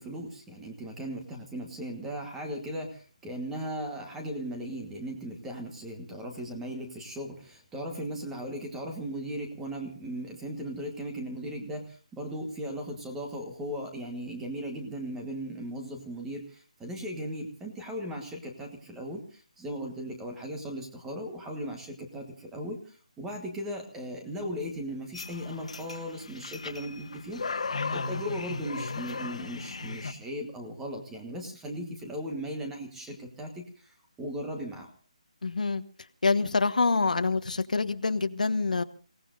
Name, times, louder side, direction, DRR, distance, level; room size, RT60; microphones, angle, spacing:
voice 1, 0.0-27.6 27.9-34.9, equal, 5° right, 1.4 m, -37 dB
sound 1, 25.1-30.1, left 4 dB, 55° left, 1.6 m, -36 dB
voice 2, 35.4-35.8 36.2-38.8, left 4 dB, 80° left, 1.3 m, -26 dB
29.5 x 17.5 x 2.6 m
hypercardioid pair, 175°, 4 cm